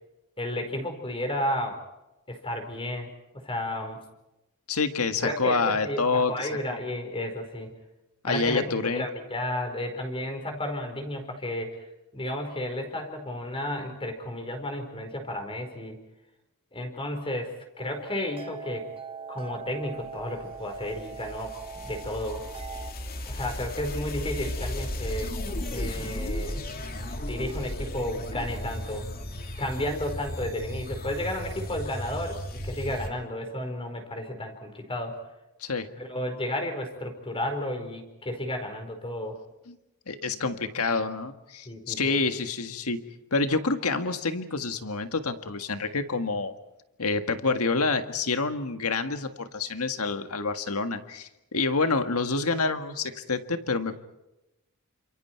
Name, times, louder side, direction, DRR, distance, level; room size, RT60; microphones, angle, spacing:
voice 1, 0.4-1.8 2.3-4.0 5.2-7.7 8.3-11.8 12.1-16.0 16.7-18.9 19.3-22.4 23.2-26.6 27.2-29.1 29.6-35.2 36.0-39.4 41.6-42.2, left 1 dB, 25° left, 4 dB, 4.7 m, -33 dB
voice 2, 4.7-6.5 8.2-9.1 35.6-35.9 39.7-39.8 40.1-43.0 43.3-46.5 47.0-54.0, left 3 dB, 75° left, 8 dB, 1.8 m, -27 dB
sound 1, 17.8-22.9, right 6 dB, 25° right, 1.2 m, -42 dB
sound 2, 20.2-33.1, left 1 dB, 45° left, 2.7 m, -35 dB
30.0 x 27.5 x 4.6 m, 0.95 s
head